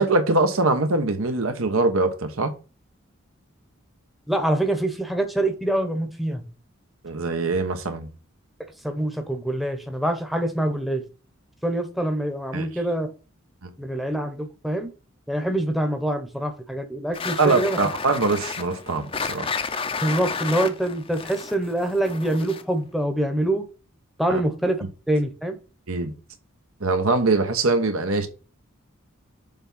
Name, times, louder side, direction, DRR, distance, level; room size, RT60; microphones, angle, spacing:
voice 1, 0.0-2.5 7.0-8.1 12.5-12.7 13.6-13.7 17.4-19.5 24.3-24.4 25.9-26.1 26.8-28.3, right 3 dB, 80° right, 1.2 m, -22 dB
voice 2, 4.3-6.4 8.8-11.0 11.6-13.1 13.8-14.9 15.3-17.8 20.0-23.6 24.2-24.8 25.1-25.6, right 1 dB, ahead, 0.9 m, -25 dB
sound 1, 17.1-22.8, left 5 dB, 25° left, 0.6 m, -32 dB
7.0 x 3.5 x 5.5 m
head